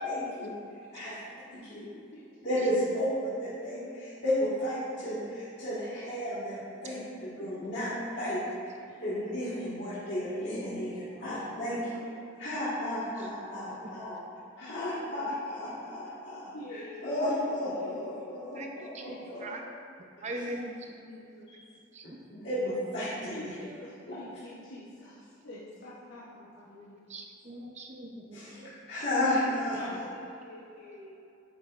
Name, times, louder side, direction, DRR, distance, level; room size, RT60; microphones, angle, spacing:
voice 1, 0.0-0.5 0.9-1.1 1.5-1.9 2.4-8.4 9.0-11.8 12.4-14.1 14.6-16.4 16.7-19.5 22.0-23.6 24.1-24.2 28.3-28.6 28.9-30.0, left 1 dB, 60° left, -12 dB, 1.7 m, -33 dB
voice 2, 1.8-2.2 7.4-7.8 8.9-9.0 9.9-10.6 11.2-12.1 14.6-15.0 16.5-17.1 17.8-18.2 19.1-19.2 20.4-20.6 21.1-21.6 23.3-25.2 25.4-27.0 29.8-31.1, left 1 dB, 80° left, -6 dB, 1.0 m, -47 dB
voice 3, 20.2-20.7 21.9-22.2 27.1-28.7, right 1 dB, 35° right, 2 dB, 0.6 m, -40 dB
9.4 x 6.2 x 2.5 m, 2.6 s
head